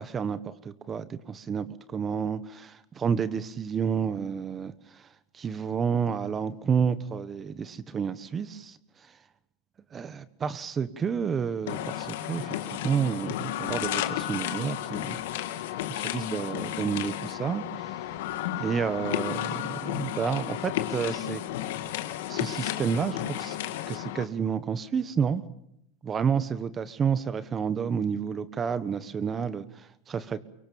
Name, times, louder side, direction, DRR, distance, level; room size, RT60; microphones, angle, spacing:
voice 1, 0.0-5.1 5.3-9.1 9.9-15.2 15.5-15.6 16.0-18.0 18.6-21.4 22.3-23.6 23.9-25.4 26.0-30.4, right 6 dB, 25° right, 15 dB, 1.3 m, -30 dB
sound 1, 11.7-24.2, left 12 dB, 80° left, 2.0 m, -33 dB
24.0 x 23.5 x 7.1 m, 0.79 s
supercardioid pair, 125°, 0 cm